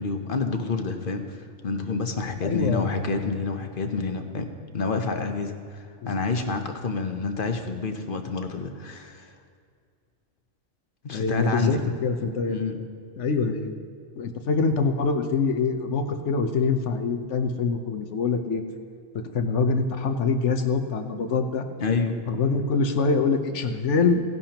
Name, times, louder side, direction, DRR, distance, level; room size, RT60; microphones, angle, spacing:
voice 1, 0.0-4.5 4.7-9.3 11.0-11.8 12.5-12.8 21.8-22.2, left 4 dB, 45° left, 6 dB, 1.0 m, -28 dB
voice 2, 2.4-2.9 6.0-6.1 11.1-12.6 13.2-13.8 14.2-18.6 19.3-21.6 22.3-24.2, left 4 dB, 70° left, 7 dB, 1.2 m, -24 dB
17.5 x 11.0 x 2.9 m, 2.3 s
omnidirectional pair, 1.3 m